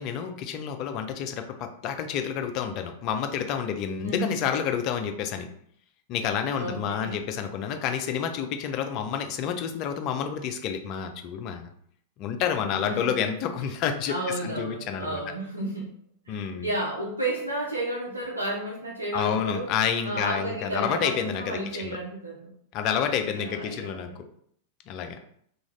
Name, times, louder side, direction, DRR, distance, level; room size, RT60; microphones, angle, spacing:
voice 1, 0.0-5.5 6.1-11.7 12.2-14.1 14.4-15.2 16.3-16.7 19.1-22.0 22.7-24.1 24.9-25.2, left 8 dB, 40° left, 6 dB, 0.4 m, -29 dB
voice 2, 4.0-4.4 6.5-7.2 12.8-13.2 14.1-15.9 16.3-19.7 20.0-22.5 23.3-24.3, right 1 dB, 85° right, -5 dB, 0.5 m, -32 dB
2.5 x 2.3 x 3.1 m, 0.66 s
figure-of-eight pair, 90°, 0 cm